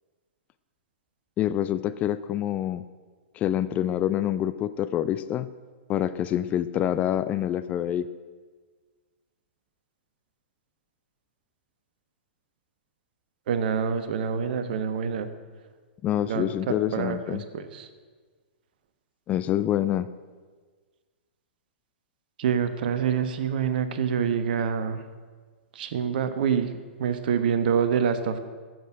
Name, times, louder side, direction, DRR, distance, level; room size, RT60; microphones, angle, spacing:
voice 1, 1.4-2.8 3.3-5.5 5.9-8.1 16.0-17.4 19.3-20.1, left 11 dB, 20° left, 13 dB, 0.4 m, -26 dB
voice 2, 13.5-15.3 16.3-17.9 22.4-25.0 25.7-26.7 27.0-28.4, right 7 dB, 50° right, 10 dB, 1.2 m, -26 dB
12.5 x 7.8 x 9.1 m, 1.5 s
figure-of-eight pair, 110°, 6 cm